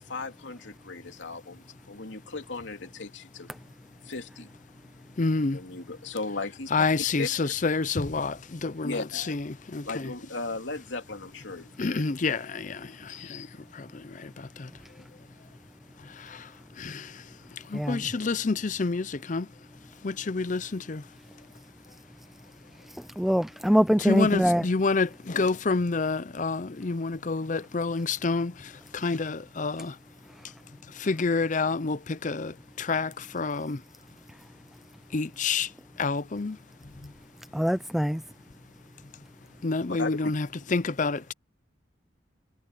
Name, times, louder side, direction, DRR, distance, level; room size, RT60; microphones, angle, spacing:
voice 1, 0.1-3.5 4.0-4.5 5.5-7.5 8.8-9.3 9.9-12.0 13.1-13.5 39.9-40.3 40.7-40.8, left 3 dB, 75° left, 2.9 m, -37 dB
voice 2, 5.2-5.6 6.7-10.1 11.8-13.5 13.7-14.7 16.0-19.5 20.0-21.1 24.0-30.0 30.9-33.8 35.1-35.7 36.0-36.6 36.8-37.1 39.6-41.3, left 4 dB, 40° left, 0.6 m, -29 dB
voice 3, 23.2-24.6 37.5-38.2, equal, ahead, 0.3 m, -23 dB
head